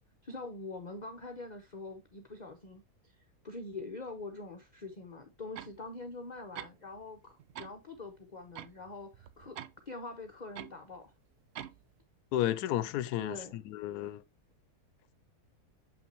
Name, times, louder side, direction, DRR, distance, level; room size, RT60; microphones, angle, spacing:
voice 1, 0.2-11.1 13.2-13.6, left 3 dB, 35° left, 0.8 m, -44 dB
sound 1, 5.6-5.8 6.5-7.1 7.4-7.8 8.6-9.7 10.6-10.7 11.5-11.8, right 10 dB, 75° right, 0.6 m, -45 dB
voice 2, 12.3-14.2, left 13 dB, 85° left, 1.1 m, -32 dB
7.4 x 5.6 x 2.9 m
omnidirectional pair, 1.6 m